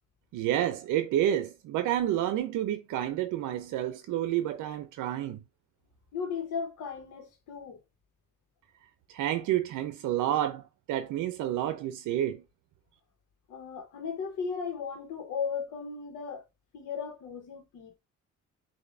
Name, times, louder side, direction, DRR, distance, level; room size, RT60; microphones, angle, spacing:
voice 1, 0.3-5.4 9.1-12.4, right 12 dB, 85° right, 0.6 m, -29 dB
voice 2, 6.1-7.8 13.5-16.5 16.7-18.0, left 6 dB, 85° left, 1.5 m, -36 dB
6.6 x 2.8 x 2.6 m
cardioid pair, 90°, 30 cm